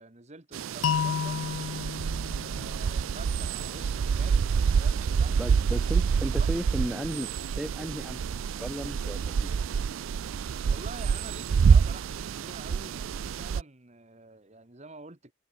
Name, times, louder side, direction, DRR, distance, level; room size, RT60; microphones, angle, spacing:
voice 1, 0.0-1.5 2.1-5.4 6.3-6.5 10.7-15.3, right 3 dB, 35° right, 1.6 m, -47 dB
sound 1, 0.5-13.6, right 6 dB, 80° right, 0.4 m, -27 dB
sound 2, 0.8-3.7, left 7 dB, 70° left, 0.3 m, -32 dB
voice 2, 5.4-9.5, equal, 5° right, 0.5 m, -35 dB
head